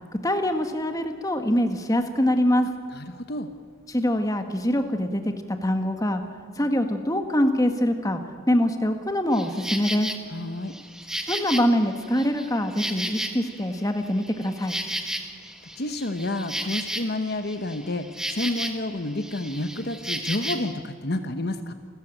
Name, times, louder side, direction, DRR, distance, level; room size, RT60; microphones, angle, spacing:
voice 1, 0.1-2.7 3.9-6.2 6.6-8.2 8.5-10.1 11.3-14.7, equal, 15° left, 6 dB, 1.7 m, -24 dB
voice 2, 2.9-3.5 10.3-10.7 15.8-21.7, left 1 dB, 50° left, 8 dB, 1.1 m, -30 dB
Insect, 9.3-10.2 10.7-13.7 14.0-18.9 19.2-20.7, right 1 dB, 5° right, 1.4 m, -33 dB
28.5 x 14.5 x 8.9 m, 2.1 s
head